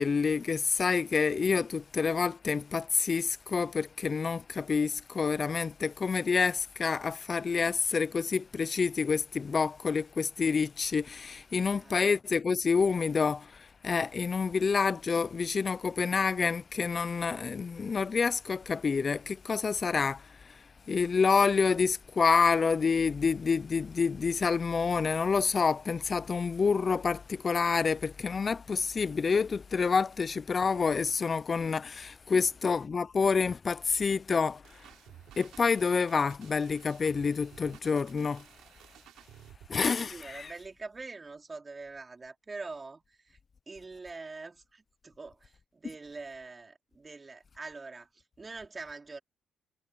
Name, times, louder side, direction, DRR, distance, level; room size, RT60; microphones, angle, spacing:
voice 1, 0.0-13.5 13.8-20.2 20.9-34.6 35.4-38.4 39.7-40.5, left 5 dB, 40° left, 0.6 m, -28 dB
sound 1, 34.6-39.9, right 12 dB, 85° right, 4.3 m, -54 dB
voice 2, 39.9-43.4 43.7-49.2, right 3 dB, 25° right, 4.3 m, -44 dB
cardioid pair, 90°, 0 cm